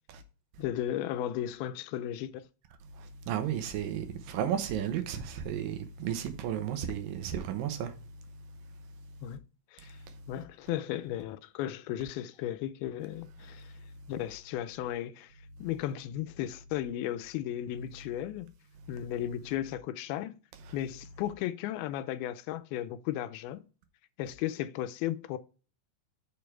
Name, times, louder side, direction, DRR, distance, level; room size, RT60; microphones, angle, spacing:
voice 1, 0.6-2.4 9.2-9.5 9.7-10.0 10.3-13.7 14.1-15.3 15.6-18.5 18.9-20.4 20.7-23.6 24.2-25.4, left 12 dB, 85° left, 2.5 m, -35 dB
voice 2, 3.0-7.9, right 9 dB, 75° right, 2.6 m, -33 dB
6.9 x 5.2 x 4.5 m
omnidirectional pair, 4.3 m